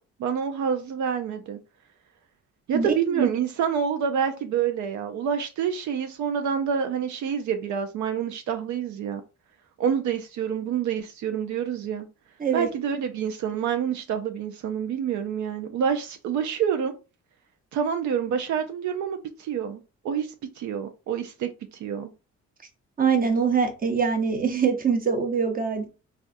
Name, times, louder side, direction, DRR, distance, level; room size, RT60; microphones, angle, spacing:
voice 1, 0.2-1.6 2.7-9.2 9.8-12.1 12.5-16.9 17.7-22.1, right 7 dB, 70° right, 0.5 m, -27 dB
voice 2, 2.7-3.3 12.4-12.7 23.0-25.9, right 6 dB, 30° right, 0.8 m, -23 dB
3.3 x 2.4 x 2.5 m
cardioid pair, 90°, 30 cm